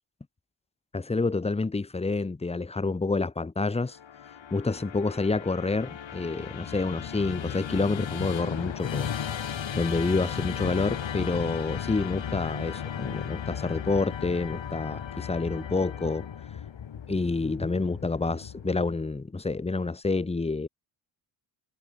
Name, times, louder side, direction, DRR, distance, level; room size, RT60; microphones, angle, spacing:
voice 1, 0.9-4.0 4.5-9.1 9.7-16.3 17.1-20.7, left 3 dB, 10° left, 0.9 m, -28 dB
Musical instrument, 3.9-19.2, left 8 dB, 65° left, 5.4 m, -36 dB
cardioid pair, 90°, 49 cm